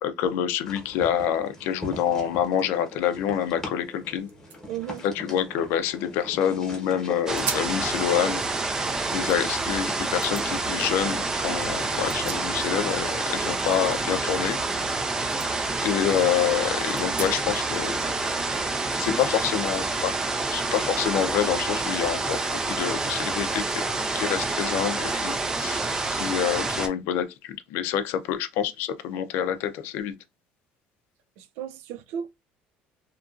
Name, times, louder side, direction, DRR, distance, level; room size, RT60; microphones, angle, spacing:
voice 1, 0.0-4.3 5.1-8.4 9.1-14.6 15.8-18.2 18.9-20.1 20.5-23.8 24.1-30.1, left 9 dB, 70° left, 0.4 m, -27 dB
sound 1, 0.6-14.0, left 1 dB, 10° left, 1.0 m, -43 dB
sound 2, 3.9-4.0 4.2-6.4 6.9-7.0 7.4-7.8 8.2-9.6 10.2-10.5 11.8-12.9 13.2-15.0 15.3-15.5 16.0-16.1 16.9-17.7, right 5 dB, 50° right, 0.7 m, -40 dB
voice 2, 4.7-5.1 31.4-32.3, right 9 dB, 80° right, 0.3 m, -34 dB
sound 3, 7.3-26.9, right 3 dB, 15° right, 0.4 m, -28 dB
2.9 x 2.4 x 2.4 m
cardioid pair, 150°, 4 cm